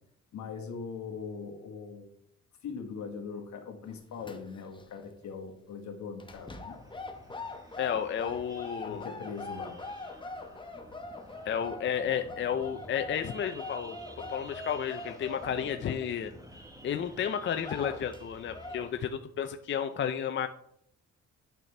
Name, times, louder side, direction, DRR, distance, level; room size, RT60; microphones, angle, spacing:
voice 1, 0.3-2.1 2.6-6.8 8.8-9.8, left 5 dB, 70° left, 3 dB, 1.6 m, -41 dB
sound 1, 3.9-4.8 5.1-5.3 6.2-16.7 17.1-17.2 17.5-18.2 18.5-18.9, left 3 dB, 15° left, 0.8 m, -43 dB
sound 2, 6.3-19.1, right 1 dB, 10° right, 1.2 m, -51 dB
voice 2, 7.8-9.1 11.5-16.3 16.8-20.5, left 8 dB, 40° left, 8 dB, 0.5 m, -32 dB
9.1 x 5.8 x 3.3 m, 0.71 s
cardioid pair, 90°, 30 cm